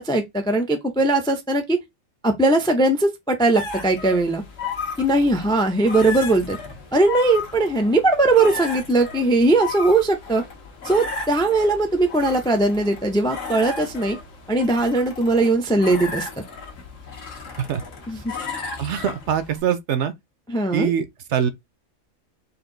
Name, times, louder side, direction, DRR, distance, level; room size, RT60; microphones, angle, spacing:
voice 1, 0.0-1.8 2.2-4.4 5.0-6.6 6.9-10.4 10.8-14.2 14.5-16.3 18.1-18.3 20.5-20.9, right 2 dB, 5° left, 0.4 m, -20 dB
sound 1, 3.5-19.6, left 4 dB, 70° left, 1.6 m, -34 dB
voice 2, 18.8-20.1 20.7-21.5, right 8 dB, 65° right, 0.9 m, -23 dB
4.3 x 2.6 x 3.8 m
omnidirectional pair, 1.4 m